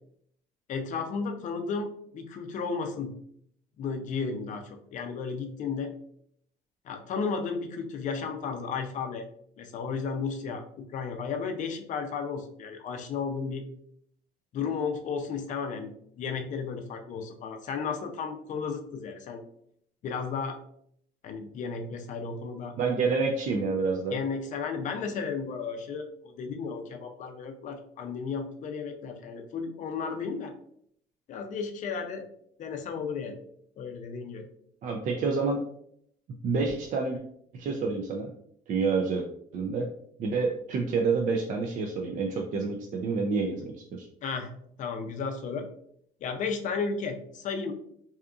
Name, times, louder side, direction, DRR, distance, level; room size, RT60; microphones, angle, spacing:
voice 1, 0.7-3.1 3.8-5.9 6.8-9.3 9.6-13.6 14.5-19.4 20.0-20.6 21.2-22.7 24.1-30.5 31.3-32.3 32.6-33.4 33.8-34.5 44.2-45.7 46.2-47.7, left 5 dB, 50° left, 5 dB, 0.4 m, -34 dB
voice 2, 22.8-24.2 34.8-35.6 36.4-37.2 37.5-38.3 38.7-39.3 39.5-39.9 40.2-44.1, right 4 dB, 50° right, 1 dB, 0.4 m, -28 dB
2.7 x 2.4 x 2.3 m, 0.68 s
cardioid pair, 110°, 17 cm